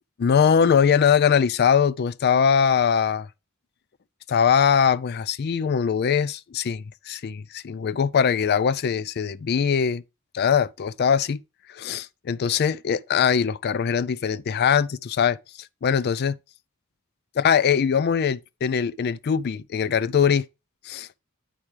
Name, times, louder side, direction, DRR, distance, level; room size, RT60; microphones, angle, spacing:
voice 1, 0.2-3.3 4.3-10.0 10.3-11.4 11.7-16.3 17.4-20.5 20.8-21.1, left 7 dB, 50° left, 0.4 m, -22 dB
8.7 x 6.1 x 3.3 m
head